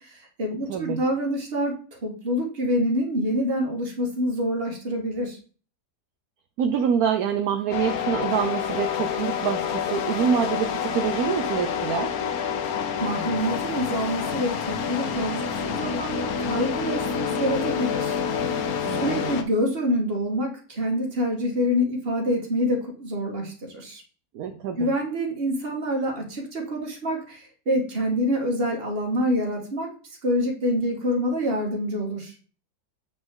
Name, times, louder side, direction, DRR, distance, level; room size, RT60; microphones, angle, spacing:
voice 1, 0.0-5.4 13.0-18.6 18.9-24.0 24.8-29.9 30.2-32.3, equal, 35° right, 2 dB, 1.8 m, -26 dB
voice 2, 6.6-12.1 18.9-19.4 24.3-24.9, right 7 dB, 70° right, 7 dB, 1.1 m, -26 dB
sound 1, 7.7-19.4, left 7 dB, 65° left, 1.3 m, -28 dB
7.9 x 5.2 x 3.7 m, 0.40 s
omnidirectional pair, 1.7 m